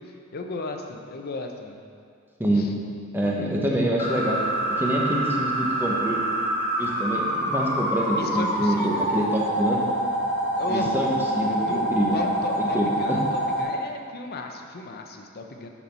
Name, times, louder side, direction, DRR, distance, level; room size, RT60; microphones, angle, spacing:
voice 1, 0.0-1.8 2.5-2.7 3.4-3.5 8.1-9.1 10.6-10.9 11.5-13.2 13.6-15.7, left 3 dB, 50° left, 4 dB, 0.6 m, -35 dB
voice 2, 3.1-4.4 4.8-6.2 6.8-9.8 10.3-10.4 10.7-11.1 11.3-12.2 12.6-13.2, right 1 dB, 10° right, -3 dB, 0.9 m, -26 dB
sound 1, 4.0-13.6, right 1 dB, 25° left, 1.8 m, -26 dB
7.3 x 4.1 x 5.4 m, 2.3 s
head